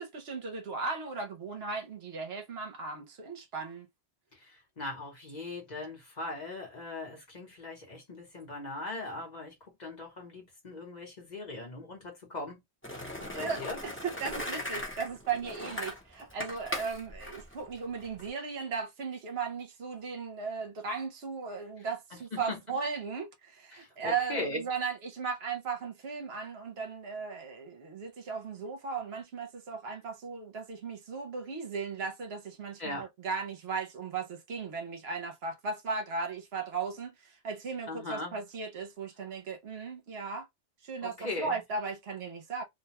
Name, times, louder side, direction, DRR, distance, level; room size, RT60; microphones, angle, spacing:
voice 1, 0.0-3.9 13.3-40.5 40.8-42.6, right 5 dB, 65° right, 0.9 m, -37 dB
voice 2, 4.3-12.6 13.2-13.8 22.1-22.6 23.7-24.6 32.8-33.1 37.9-38.4 41.0-41.6, left 2 dB, 45° left, 1.0 m, -39 dB
Skateboard, 12.8-18.3, left 1 dB, 10° left, 0.8 m, -39 dB
2.5 x 2.2 x 2.8 m
omnidirectional pair, 1.1 m